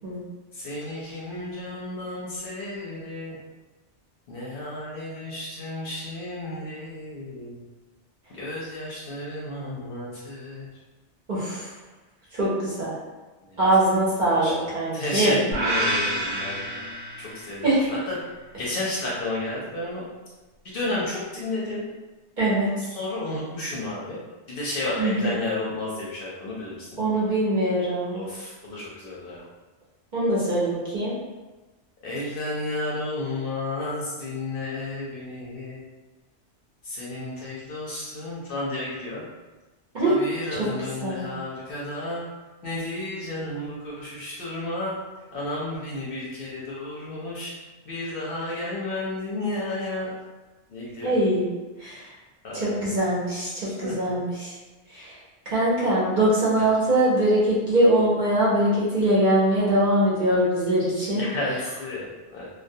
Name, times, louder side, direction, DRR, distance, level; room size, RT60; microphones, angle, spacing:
voice 1, 0.6-3.4 4.3-7.6 8.3-10.7 13.5-13.6 14.3-14.7 14.9-16.8 17.2-17.7 18.1-18.2 18.6-20.0 20.6-21.8 22.9-24.2 24.5-27.0 28.1-29.4 32.0-35.8 36.9-39.2 40.0-42.2 42.6-45.0 45.3-47.5 47.9-50.1 50.7-51.1 52.4-52.8 53.6-53.9 61.1-62.5, left 2 dB, 60° left, -6 dB, 0.7 m, -32 dB
voice 2, 11.3-11.7 12.3-13.0 13.6-15.4 17.6-18.0 22.4-22.7 25.0-25.5 27.0-28.2 30.1-31.2 39.9-40.1 40.5-40.7 41.0-41.3 51.0-51.5 51.8-52.0 52.5-54.5 54.9-55.2 55.5-61.3, right 1 dB, 50° right, -7 dB, 0.7 m, -22 dB
sound 1, 15.5-17.7, right 1 dB, 85° right, 0.9 m, -28 dB
2.2 x 2.2 x 2.6 m, 1.2 s
omnidirectional pair, 1.2 m